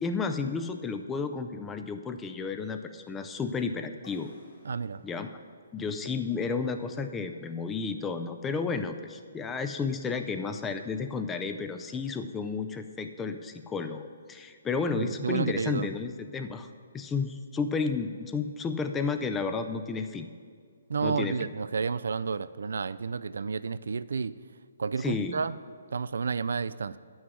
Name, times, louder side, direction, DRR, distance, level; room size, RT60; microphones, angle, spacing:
voice 1, 0.0-4.3 5.0-5.3 5.7-16.7 16.9-20.3 21.0-21.5 25.0-25.4, left 4 dB, 10° left, 8 dB, 0.4 m, -32 dB
sound 1, 4.0-7.7, left 3 dB, 65° left, 2.2 m, -58 dB
voice 2, 4.6-5.0 15.0-15.9 20.9-24.3 24.8-25.6 25.9-27.0, right 5 dB, 75° right, 15 dB, 0.3 m, -31 dB
9.8 x 6.3 x 6.1 m, 2.1 s
hypercardioid pair, 155°, 0 cm